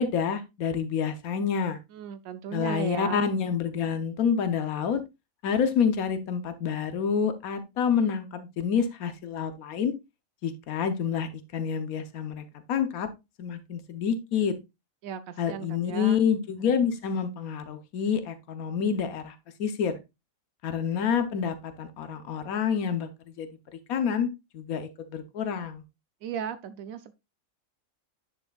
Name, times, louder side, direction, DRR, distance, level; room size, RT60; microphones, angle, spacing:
voice 1, 0.0-1.8 2.5-5.0 5.4-9.9 10.4-13.1 13.4-14.5 15.4-20.0 20.6-23.1 23.4-23.5 23.9-24.3 24.5-25.8, left 7 dB, 90° left, 1.3 m, -28 dB
voice 2, 1.9-3.3 15.0-16.2 26.2-27.1, right 8 dB, 80° right, 1.0 m, -35 dB
10.5 x 6.2 x 2.4 m
omnidirectional pair, 1.5 m